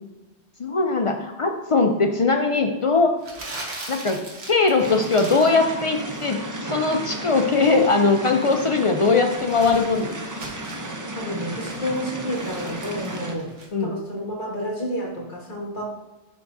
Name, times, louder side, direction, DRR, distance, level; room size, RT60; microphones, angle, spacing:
voice 1, 0.6-3.2 3.9-10.1 13.7-13.9, left 3 dB, 60° left, 4 dB, 0.3 m, -20 dB
Crumpling crinkling, 3.2-5.6 5.9-6.3 8.1-10.9 11.4-13.7, right 2 dB, 85° right, 1.5 m, -40 dB
sound 1, 4.8-13.4, right 1 dB, 30° right, 0.3 m, -33 dB
voice 2, 11.1-13.5 13.8-15.8, equal, 45° left, -5 dB, 1.9 m, -30 dB
10.5 x 3.5 x 2.6 m, 1.1 s
omnidirectional pair, 1.2 m